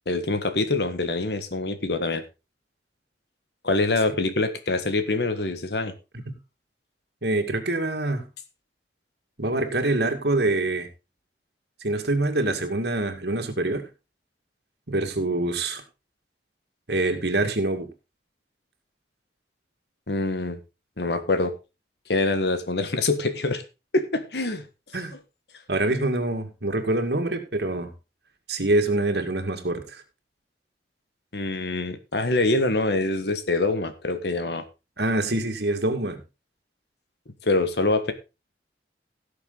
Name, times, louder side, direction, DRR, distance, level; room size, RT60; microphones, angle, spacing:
voice 1, 0.1-2.2 3.6-5.9 20.1-20.6 21.0-21.5 22.1-23.6 23.9-24.6 31.3-34.6 37.4-38.1, left 2 dB, 70° left, 10 dB, 1.5 m, -25 dB
voice 2, 7.2-8.3 9.4-10.9 11.8-13.9 14.9-15.8 16.9-17.9 24.9-25.1 25.7-27.9 28.5-30.0 35.0-36.2, right 2 dB, 70° right, 5 dB, 2.1 m, -25 dB
17.0 x 6.7 x 3.9 m, 0.28 s
head